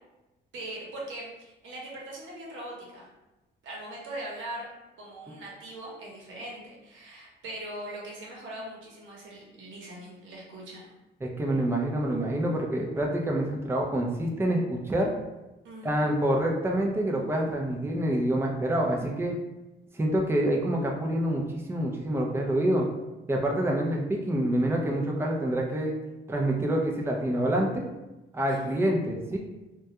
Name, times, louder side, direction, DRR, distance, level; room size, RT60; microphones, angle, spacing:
voice 1, 0.5-3.0 3.6-4.7 5.0-10.9 15.6-16.1 28.5-28.8, right 1 dB, 75° right, -4 dB, 0.9 m, -41 dB
voice 2, 11.2-15.1 15.8-19.3 19.9-21.4 21.7-22.9 23.3-25.9 26.3-27.9 28.3-29.4, right 1 dB, 10° right, 0 dB, 0.5 m, -27 dB
2.3 x 2.2 x 2.8 m, 1.0 s
cardioid pair, 90°, 20 cm